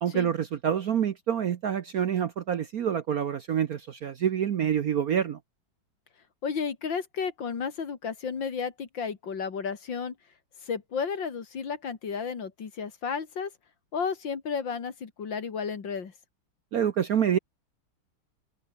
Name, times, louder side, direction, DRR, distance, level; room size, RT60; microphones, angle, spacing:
voice 1, 0.0-5.4 16.7-17.4, right 9 dB, 55° right, 1.1 m, -27 dB
voice 2, 6.4-10.2 10.6-13.5 13.9-16.1, left 6 dB, 60° left, 2.8 m, -32 dB
open air
omnidirectional pair, 2.3 m